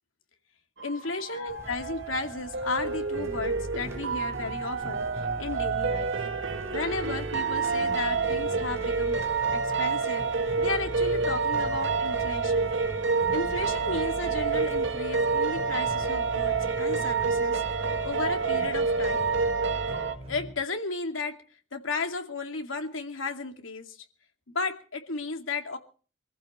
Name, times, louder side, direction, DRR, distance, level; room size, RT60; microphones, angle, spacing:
voice 1, 0.8-6.1 6.7-10.3 10.6-12.7 13.3-17.6 18.0-19.3 20.3-21.4 21.7-24.0 24.5-25.8, left 3 dB, 90° left, 5 dB, 2.5 m, -34 dB
sound 1, 0.8-20.1, right 4 dB, 65° right, 1.4 m, -28 dB
sound 2, 1.5-19.6, equal, 15° right, 2.3 m, -48 dB
sound 3, 3.1-20.5, equal, 30° right, 4.3 m, -41 dB
25.0 x 15.0 x 3.3 m, 0.39 s
head